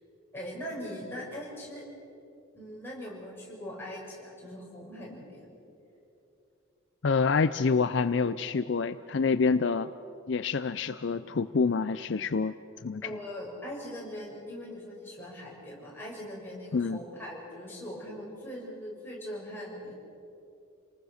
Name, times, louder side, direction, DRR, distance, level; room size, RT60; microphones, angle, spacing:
voice 1, 0.3-1.9 2.5-5.5 13.0-19.9, equal, 10° left, -5 dB, 6.5 m, -41 dB
voice 2, 7.0-9.9 10.3-12.5 12.8-13.0 16.7-17.0, left 4 dB, 60° left, 12 dB, 0.5 m, -27 dB
29.0 x 19.5 x 6.5 m, 2.8 s
head